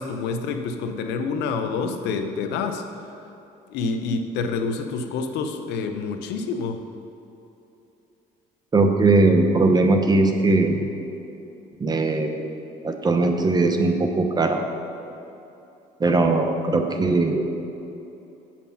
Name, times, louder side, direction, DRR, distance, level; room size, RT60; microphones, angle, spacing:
voice 1, 0.0-2.8 3.7-6.8, left 4 dB, 85° left, 6 dB, 0.7 m, -27 dB
voice 2, 8.7-10.8 11.8-12.5 12.8-14.6 16.0-17.4, right 3 dB, 25° right, 5 dB, 0.8 m, -19 dB
8.3 x 6.0 x 5.8 m, 2.9 s
cardioid pair, 110°, 17 cm